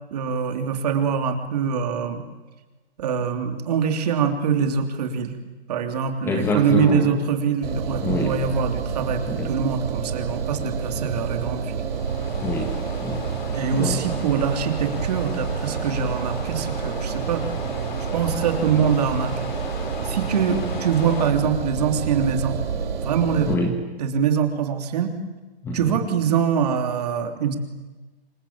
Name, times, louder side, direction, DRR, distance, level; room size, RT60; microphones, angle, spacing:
voice 1, 0.1-2.3 3.0-5.4 5.7-11.8 13.5-17.5 18.1-19.5 20.0-22.6 23.0-23.5 24.0-25.1 25.7-27.5, right 7 dB, 40° right, 6 dB, 3.3 m, -24 dB
voice 2, 6.2-7.2 8.0-8.4 9.2-9.5 12.4-13.3 13.7-14.1 23.5-23.8 25.6-25.9, left 2 dB, 5° left, 4 dB, 1.7 m, -26 dB
Engine, 7.6-23.5, right 6 dB, 65° right, 7.6 m, -29 dB
sound 1, 11.8-21.3, left 6 dB, 50° left, 4.2 m, -38 dB
27.0 x 23.5 x 8.8 m, 1.2 s
hypercardioid pair, 170°, 32 cm